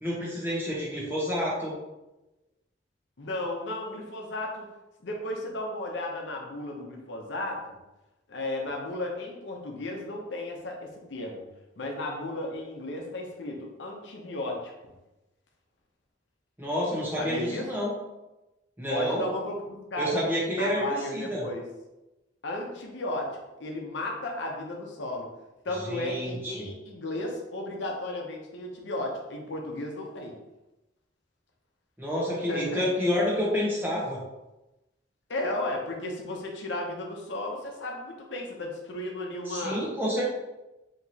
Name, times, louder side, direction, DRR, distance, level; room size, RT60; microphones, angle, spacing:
voice 1, 0.0-1.8 16.6-17.9 18.8-19.3 20.0-21.4 25.8-26.7 32.0-34.2 39.5-40.2, equal, 10° right, -6 dB, 1.1 m, -29 dB
voice 2, 3.2-4.7 5.0-7.6 8.3-11.4 11.8-14.7 17.2-17.6 18.9-20.2 20.5-21.6 22.4-25.3 25.6-30.4 32.5-32.9 35.3-39.8, left 1 dB, 70° left, 1 dB, 0.7 m, -34 dB
4.7 x 2.9 x 2.8 m, 0.99 s
head